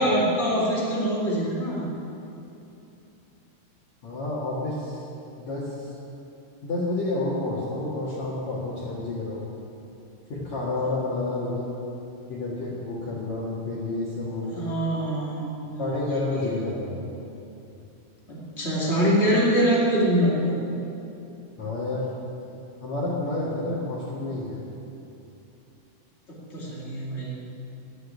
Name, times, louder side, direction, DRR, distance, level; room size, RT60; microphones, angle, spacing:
voice 1, 0.0-1.8 14.5-16.0 18.3-20.6 26.3-27.3, equal, 75° left, -6 dB, 0.6 m, -24 dB
voice 2, 4.0-5.0 5.4-5.9 6.6-9.5 10.3-11.8 12.2-14.8 15.8-17.1 21.6-22.1 22.8-24.6, left 2 dB, 55° left, -6 dB, 2.1 m, -29 dB
15.5 x 6.8 x 9.9 m, 2.8 s
omnidirectional pair, 5.8 m